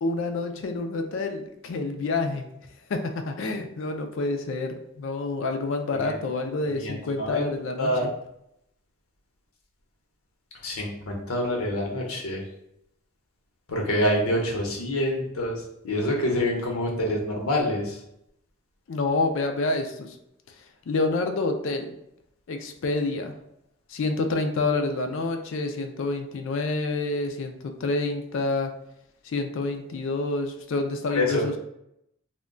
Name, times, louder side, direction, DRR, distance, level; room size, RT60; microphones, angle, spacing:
voice 1, 0.0-2.6 2.9-8.1 18.9-20.2 20.9-21.9 22.5-23.3 23.9-28.7 29.2-31.6, left 3 dB, 65° left, 5 dB, 0.4 m, -28 dB
voice 2, 6.7-7.4 7.8-8.1 10.6-12.4 13.7-18.0 31.1-31.5, left 1 dB, 90° left, 0 dB, 0.7 m, -26 dB
2.2 x 2.1 x 3.6 m, 0.79 s
head